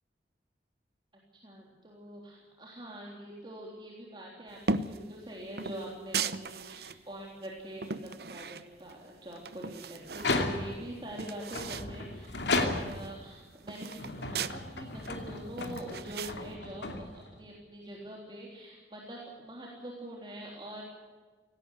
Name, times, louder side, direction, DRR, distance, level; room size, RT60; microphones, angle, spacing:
voice 1, 1.3-20.8, right 1 dB, 25° right, -2 dB, 3.5 m, -44 dB
sound 1, 4.6-5.1 5.6-7.0 7.4-9.0 9.3-10.4 10.7-10.8 11.0-11.9 12.2-12.3 12.6-14.6 15.0-16.4, right 4 dB, 60° right, 0.8 m, -37 dB
sound 2, 10.1-10.9 11.5-13.2 13.9-17.4, left 2 dB, 85° left, 2.7 m, -34 dB
18.5 x 17.0 x 9.5 m, 1.4 s
head